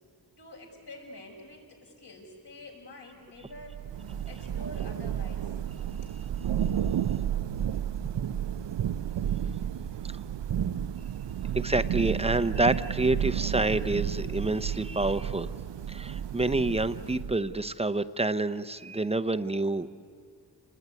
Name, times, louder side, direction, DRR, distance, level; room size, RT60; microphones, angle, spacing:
voice 1, 0.4-3.9 4.2-5.5 6.0-6.1, left 2 dB, 70° left, -1 dB, 6.1 m, -47 dB
Thunder / Rain, 3.5-17.6, right 9 dB, 80° right, 0.7 m, -32 dB
voice 2, 11.5-15.5 15.9-19.9, right 2 dB, 15° right, 10 dB, 0.7 m, -28 dB
28.5 x 21.0 x 9.6 m, 2.2 s
wide cardioid pair, 90°, 42 cm